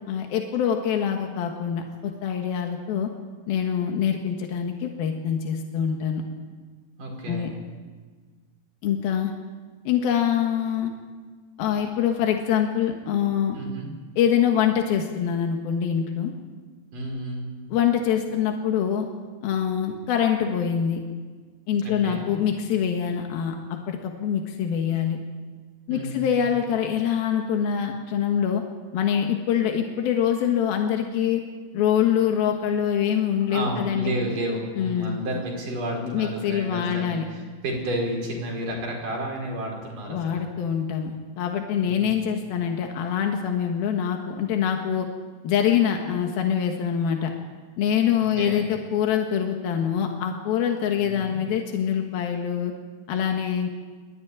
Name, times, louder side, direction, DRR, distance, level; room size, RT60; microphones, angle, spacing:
voice 1, 0.1-3.1 3.5-6.2 7.3-7.5 8.8-9.3 9.9-10.9 11.6-13.6 14.2-16.3 17.7-19.1 19.4-21.0 21.7-25.2 25.9-28.6 28.9-31.4 31.7-34.2 34.8-35.2 36.0-37.3 40.1-45.1 45.4-47.3 47.8-52.7 53.1-53.7, left 8 dB, 90° left, 3 dB, 3.3 m, -24 dB
voice 2, 7.0-7.6 13.5-13.9 16.9-17.5 21.8-22.3 25.9-26.5 33.5-40.4 41.7-42.2 48.1-48.6 51.0-51.4, right 1 dB, 60° right, 0 dB, 6.6 m, -31 dB
24.5 x 13.5 x 9.8 m, 1.5 s
omnidirectional pair, 4.2 m